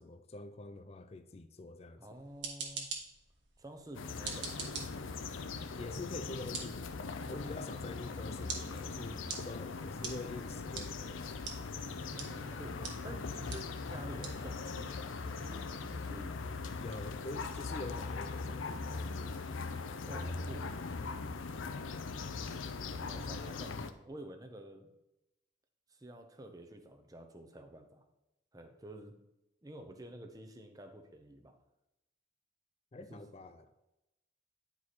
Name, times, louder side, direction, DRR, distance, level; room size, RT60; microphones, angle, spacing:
voice 1, 0.0-2.0 5.7-11.5 16.8-19.4 32.9-33.7, left 2 dB, 30° left, 0.4 m, -46 dB
voice 2, 2.0-2.9 3.6-4.7 7.1-7.7 12.1-16.4 20.1-20.8 22.9-24.9 25.9-28.0 28.5-29.1 29.6-31.5 33.0-33.2, right 1 dB, 20° right, 0.7 m, -50 dB
sound 1, 2.1-18.9, right 5 dB, 70° right, 1.4 m, -48 dB
sound 2, 3.9-23.9, left 4 dB, 90° left, 0.6 m, -40 dB
sound 3, 7.2-15.0, left 3 dB, 75° left, 1.2 m, -59 dB
10.0 x 4.8 x 4.1 m
head